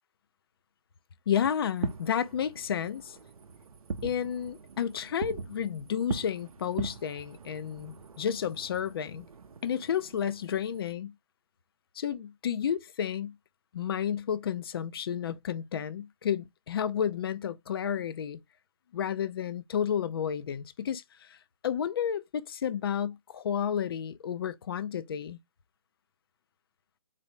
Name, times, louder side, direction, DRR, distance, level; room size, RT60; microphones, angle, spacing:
voice 1, 1.3-3.2 4.0-9.3 9.6-11.1 12.0-13.3 13.7-18.4 18.9-21.4 21.6-25.4, left 8 dB, 45° left, 0.4 m, -31 dB
Fireworks, 1.7-10.9, right 5 dB, 85° right, 0.5 m, -41 dB
4.1 x 3.1 x 3.0 m
hypercardioid pair, 150°, 18 cm